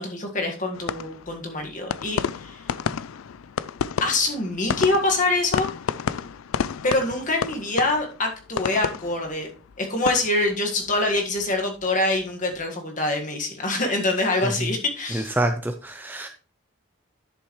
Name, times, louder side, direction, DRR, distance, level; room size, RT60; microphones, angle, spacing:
voice 1, 0.0-2.7 4.0-5.7 6.8-9.5 9.8-15.3, left 2 dB, 40° left, 2 dB, 1.7 m, -25 dB
sound 1, 0.7-11.9 12.1-12.6, left 7 dB, 80° left, 0.4 m, -31 dB
voice 2, 15.1-16.3, right 1 dB, 10° right, 7 dB, 0.5 m, -26 dB
11.0 x 6.8 x 3.2 m, 0.36 s
head